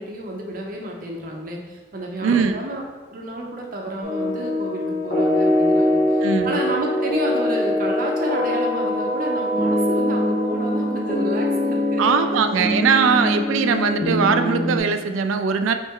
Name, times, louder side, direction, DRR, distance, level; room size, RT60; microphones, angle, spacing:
voice 1, 0.0-2.8 3.1-6.0 6.4-12.1, right 1 dB, 45° right, 0 dB, 0.6 m, -30 dB
voice 2, 2.2-2.6 6.2-6.6 12.0-15.7, right 5 dB, 90° right, 8 dB, 0.3 m, -20 dB
sound 1, 4.0-14.8, left 1 dB, 45° left, 0.9 m, -22 dB
4.3 x 3.2 x 3.6 m, 1.3 s
head